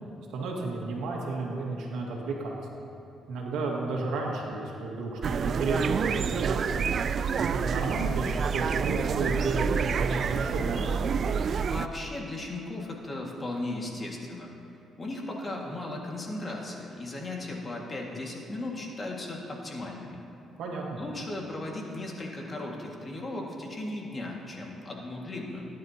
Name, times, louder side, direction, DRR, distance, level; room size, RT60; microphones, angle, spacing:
voice 1, 0.3-2.6 3.3-6.7 7.4-10.9 20.6-20.8, right 3 dB, 85° right, -1 dB, 1.9 m, -32 dB
sound 1, 5.2-11.9, right 6 dB, 55° right, 0.3 m, -28 dB
voice 2, 11.6-14.5 15.0-20.2 21.0-25.7, left 2 dB, 30° left, -1 dB, 2.0 m, -36 dB
17.5 x 10.5 x 2.9 m, 2.7 s
cardioid pair, 90°, 0 cm